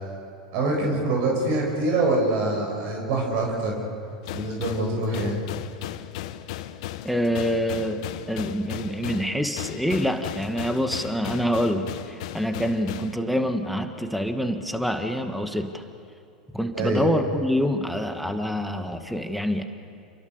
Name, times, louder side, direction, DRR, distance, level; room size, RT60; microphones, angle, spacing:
voice 1, 0.5-3.8 4.3-5.4 16.7-17.1, right 2 dB, 55° right, 0 dB, 7.5 m, -25 dB
sound 1, 4.2-13.2, left 13 dB, 60° left, 1.2 m, -36 dB
voice 2, 7.0-15.8 16.5-19.6, equal, ahead, 7 dB, 1.9 m, -26 dB
29.0 x 22.5 x 6.9 m, 2.5 s
figure-of-eight pair, 85°, 4 cm